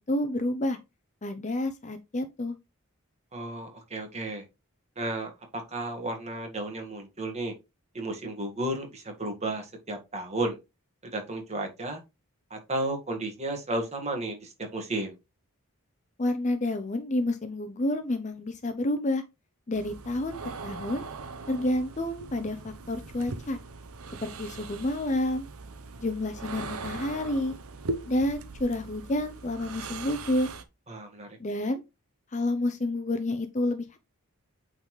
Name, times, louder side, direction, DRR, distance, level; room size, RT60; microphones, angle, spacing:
voice 1, 0.1-0.8 1.2-2.5 16.2-19.2 19.7-21.0 21.5-23.6 24.2-25.5 26.0-27.5 28.0-30.5 31.4-31.8 32.3-34.0, left 1 dB, 30° left, 0.6 m, -29 dB
voice 2, 3.3-4.4 4.9-7.5 7.9-10.6 11.1-12.0 12.5-15.1 30.9-31.4, right 1 dB, 30° right, 1.8 m, -33 dB
sound 1, 19.7-30.6, right 3 dB, 75° right, 0.8 m, -40 dB
8.6 x 4.0 x 3.1 m
head